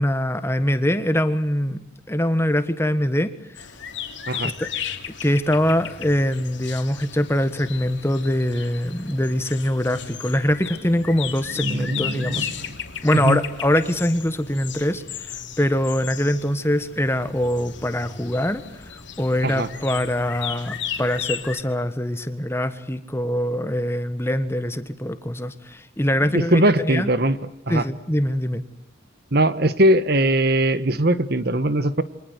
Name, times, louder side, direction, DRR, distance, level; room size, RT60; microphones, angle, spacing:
voice 1, 0.0-1.8 2.1-3.7 4.4-4.7 5.2-12.5 13.0-27.1 27.7-28.6, left 1 dB, 10° left, 11 dB, 1.4 m, -23 dB
sound 1, 3.6-21.6, left 8 dB, 65° left, 2.9 m, -35 dB
voice 2, 11.6-12.4 13.1-13.4 19.4-19.7 26.3-27.4 27.7-27.8 29.3-32.0, right 1 dB, 50° right, 14 dB, 1.4 m, -20 dB
28.5 x 25.5 x 8.1 m, 0.77 s
head